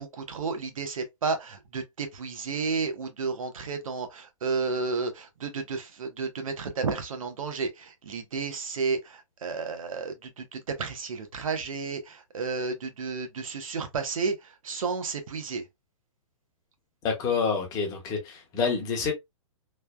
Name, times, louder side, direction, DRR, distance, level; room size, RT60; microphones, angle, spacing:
voice 1, 0.0-15.6, right 4 dB, 85° right, 0.9 m, -32 dB
voice 2, 17.0-19.1, left 5 dB, 20° left, 0.9 m, -27 dB
3.2 x 2.2 x 2.2 m
hypercardioid pair, 155°, 17 cm